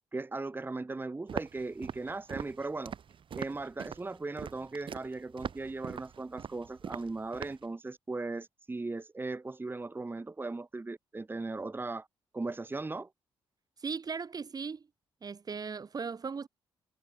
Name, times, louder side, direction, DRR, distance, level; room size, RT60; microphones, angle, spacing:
voice 1, 0.1-2.9 3.3-12.1 12.3-13.1, right 3 dB, 20° right, 1.5 m, -38 dB
Walk footsteps, 1.3-7.7, right 7 dB, 55° right, 3.7 m, -42 dB
voice 2, 13.8-14.9 15.2-16.5, right 5 dB, 40° right, 1.6 m, -37 dB
cardioid pair, 75°, 10 cm